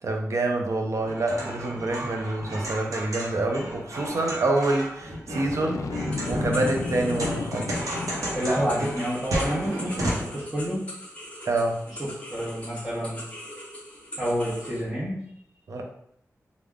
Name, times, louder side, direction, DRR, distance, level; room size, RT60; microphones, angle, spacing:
voice 1, 0.0-5.8 6.2-7.7 11.5-11.8 15.7-15.8, right 2 dB, 60° right, 2 dB, 0.6 m, -27 dB
sound 1, 1.0-10.1, right 1 dB, 80° right, 0.9 m, -33 dB
Boom, 5.5-8.7, left 4 dB, 70° left, 0.3 m, -33 dB
sound 2, 6.1-14.8, equal, 25° left, 0.7 m, -41 dB
voice 2, 6.3-6.7 8.3-10.8 11.9-13.2 14.2-15.2, equal, 10° right, -9 dB, 0.9 m, -29 dB
3.4 x 2.2 x 3.6 m, 0.72 s
wide cardioid pair, 130°, 6 cm